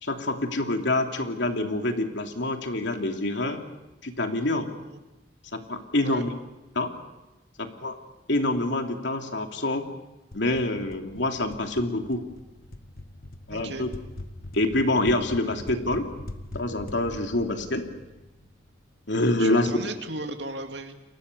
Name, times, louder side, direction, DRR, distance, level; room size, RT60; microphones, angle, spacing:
voice 1, 0.0-3.6 4.0-4.7 5.5-6.3 6.7-6.9 7.6-8.0 8.3-9.9 10.3-12.2 13.5-13.9 14.5-16.1 16.5-17.9 19.1-19.9, left 2 dB, 75° left, 4 dB, 3.0 m, -26 dB
sound 1, 10.3-19.0, left 1 dB, 50° left, 1.6 m, -43 dB
voice 2, 13.5-13.9 19.4-20.9, right 2 dB, 70° right, 4 dB, 2.5 m, -35 dB
29.5 x 23.0 x 6.8 m, 1.0 s
head